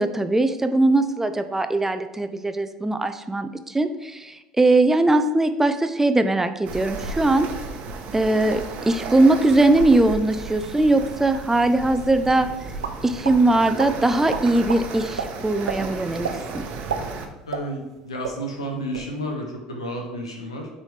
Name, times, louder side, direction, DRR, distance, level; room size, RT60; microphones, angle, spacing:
voice 1, 0.0-7.5 8.1-12.5 13.0-16.3 16.5-16.6, right 2 dB, 10° right, 9 dB, 0.6 m, -20 dB
sound 1, 6.7-17.3, right 4 dB, 55° right, 1.0 m, -34 dB
sound 2, 12.8-13.4 13.8-13.9 14.3-14.8 15.2-15.3 15.7-15.8 16.2-16.4 16.7-18.0 18.2-18.4 18.8-19.1, right 6 dB, 85° right, 0.5 m, -29 dB
voice 2, 17.5-20.7, equal, 90° left, 1 dB, 1.3 m, -31 dB
9.0 x 4.1 x 3.3 m, 1.0 s
hypercardioid pair, 70°, 3 cm